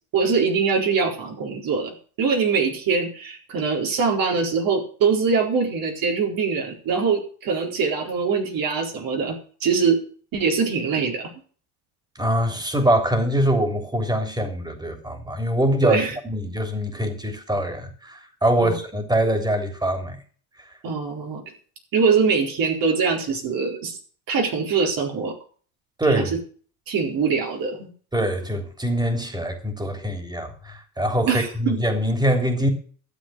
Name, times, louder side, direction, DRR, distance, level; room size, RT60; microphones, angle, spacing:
voice 1, 0.1-10.0 10.3-11.3 15.8-16.2 18.6-18.8 20.8-21.4 21.9-24.0 24.3-25.3 26.1-26.2 26.9-27.9 31.3-31.7, right 5 dB, 55° right, 4.4 m, -23 dB
voice 2, 12.2-20.2 26.0-26.3 28.1-32.7, right 1 dB, 10° right, 3.5 m, -23 dB
12.5 x 7.9 x 7.7 m
supercardioid pair, 95°, 40 cm